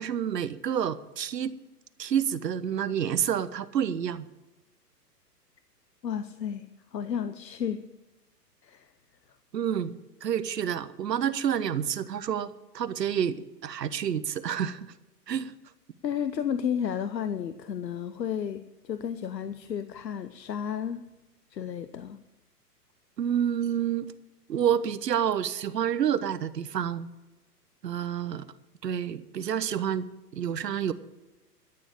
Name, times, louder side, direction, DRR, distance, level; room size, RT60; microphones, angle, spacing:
voice 1, 0.0-1.5 2.0-4.3 9.5-14.9 15.3-15.5 23.2-24.1 24.5-27.1 27.8-28.5 28.8-30.1 30.3-30.9, right 9 dB, 75° right, 14 dB, 1.1 m, -29 dB
voice 2, 6.0-6.7 6.9-7.9 8.6-8.9 16.0-21.0 21.5-22.2, left 8 dB, 85° left, 11 dB, 0.9 m, -32 dB
13.0 x 7.2 x 8.8 m, 1.0 s
hypercardioid pair, 125°, 49 cm